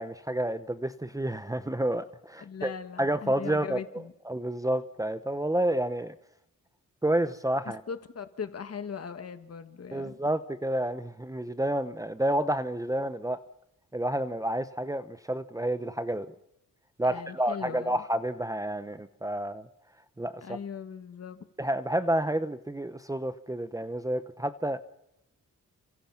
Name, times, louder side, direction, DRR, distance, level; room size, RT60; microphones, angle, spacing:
voice 1, 0.0-2.7 3.0-3.8 4.3-6.1 7.0-7.8 9.9-13.4 13.9-16.3 17.0-19.7 20.2-20.6 21.6-24.8, right 1 dB, 10° right, 12 dB, 0.9 m, -29 dB
voice 2, 2.4-4.1 7.6-10.2 17.0-18.0 20.4-21.4, left 6 dB, 50° left, 9 dB, 1.9 m, -39 dB
28.5 x 26.5 x 5.8 m, 0.83 s
wide cardioid pair, 150°, 32 cm